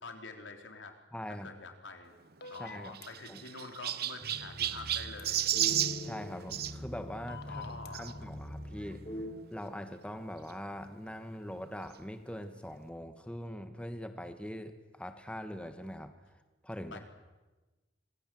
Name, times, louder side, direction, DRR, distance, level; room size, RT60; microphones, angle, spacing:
voice 1, 0.0-1.0 1.3-2.2 2.5-5.5 7.5-8.2 16.9-17.0, left 3 dB, 90° left, 5 dB, 3.7 m, -46 dB
voice 2, 1.1-1.5 2.6-3.0 3.3-3.4 6.0-9.0 9.5-16.1 16.6-17.0, equal, 5° left, 8 dB, 1.5 m, -42 dB
sound 1, 2.4-3.1 5.2-5.3 7.3-7.9, left 6 dB, 60° left, 2.1 m, -46 dB
Chirp tweet, 2.4-6.7 7.9-8.1 8.8-8.9 9.1-9.2 10.5-10.6, right 12 dB, 55° right, 0.8 m, -33 dB
sound 2, 4.2-9.3, left 1 dB, 30° left, 6.6 m, -43 dB
26.0 x 22.0 x 7.7 m, 1.2 s
head